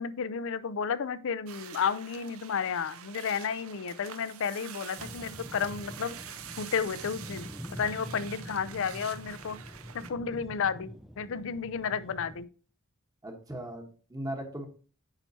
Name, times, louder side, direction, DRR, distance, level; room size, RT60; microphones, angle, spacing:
voice 1, 0.0-6.1 6.6-9.6 10.1-12.5, left 6 dB, 60° left, 0.5 m, -32 dB
sound 1, 1.5-10.1, right 9 dB, 65° right, 0.7 m, -46 dB
sound 2, 5.0-12.5, equal, ahead, 0.3 m, -45 dB
voice 2, 13.2-14.7, right 1 dB, 15° right, 1.1 m, -38 dB
8.9 x 5.7 x 2.8 m
head